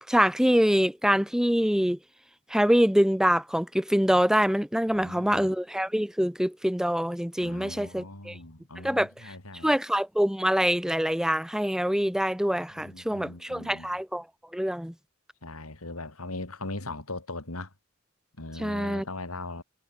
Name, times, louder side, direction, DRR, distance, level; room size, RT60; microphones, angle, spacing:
voice 1, 0.1-2.0 2.5-8.4 8.8-9.3 9.6-14.2 14.5-14.9 18.6-19.0, equal, 5° right, 1.0 m, -25 dB
voice 2, 4.9-5.5 7.4-9.7 12.7-14.0 15.4-17.7 18.4-19.6, left 2 dB, 90° left, 3.8 m, -39 dB
head